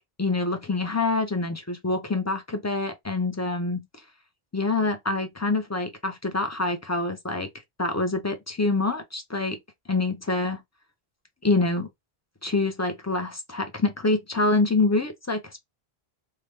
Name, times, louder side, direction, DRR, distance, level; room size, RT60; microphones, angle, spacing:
voice 1, 0.2-3.8 4.5-7.5 7.8-9.6 9.9-10.6 11.4-11.9 12.4-15.6, left 3 dB, 25° left, 0.4 m, -26 dB
3.3 x 2.2 x 3.1 m
omnidirectional pair, 1.1 m